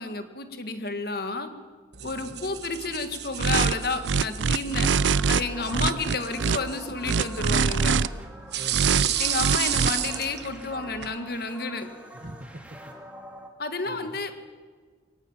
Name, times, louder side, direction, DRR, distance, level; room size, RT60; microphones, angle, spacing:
voice 1, 0.0-1.5 2.0-4.9 5.3-8.0 9.2-11.9 13.6-14.4, left 3 dB, 55° left, 8 dB, 1.8 m, -31 dB
sound 1, 1.9-11.1, right 11 dB, 60° right, 1.3 m, -33 dB
voice 2, 2.0-2.4 4.8-5.0 5.9-6.2 8.5-9.1 12.1-12.8 13.8-14.2, right 1 dB, 40° right, 7 dB, 1.5 m, -43 dB
sound 2, 3.4-3.7 4.0-5.4 5.7-6.6 7.0-8.1 8.7-9.1 9.4-9.9, right 5 dB, 75° right, 0.5 m, -23 dB
sound 3, 4.7-13.5, right 1 dB, 5° right, 2.1 m, -45 dB
23.0 x 18.0 x 7.4 m, 1.5 s
head